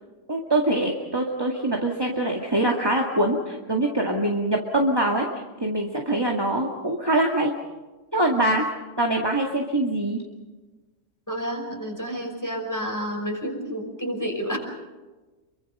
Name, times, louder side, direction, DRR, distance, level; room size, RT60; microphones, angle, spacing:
voice 1, 0.3-5.3 5.6-7.5 8.1-8.7 9.0-10.2, right 1 dB, 15° right, 1 dB, 2.1 m, -23 dB
voice 2, 11.3-14.6, equal, 10° left, 2 dB, 5.4 m, -30 dB
28.5 x 23.5 x 5.5 m, 1.2 s
omnidirectional pair, 1.7 m